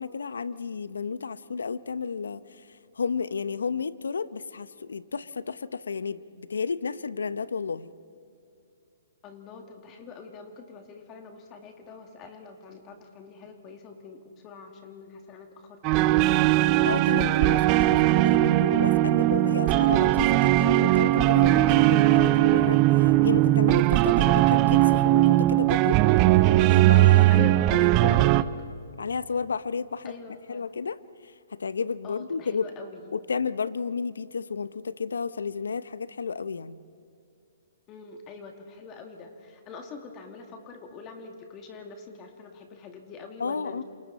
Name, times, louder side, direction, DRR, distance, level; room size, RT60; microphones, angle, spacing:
voice 1, 0.0-2.4 3.0-7.9 16.8-26.0 26.6-27.5 28.0-28.2 29.0-31.0 31.5-32.7 33.1-36.8 43.4-43.8, left 5 dB, 80° left, 16 dB, 0.8 m, -32 dB
voice 2, 9.2-16.4 24.1-24.4 27.3-28.5 30.0-30.7 32.0-33.1 37.9-43.8, left 4 dB, 30° left, 4 dB, 2.3 m, -44 dB
sound 1, 15.8-28.4, right 16 dB, 35° right, 0.6 m, -19 dB
28.0 x 28.0 x 4.2 m, 2.6 s
hypercardioid pair, 130°, 0 cm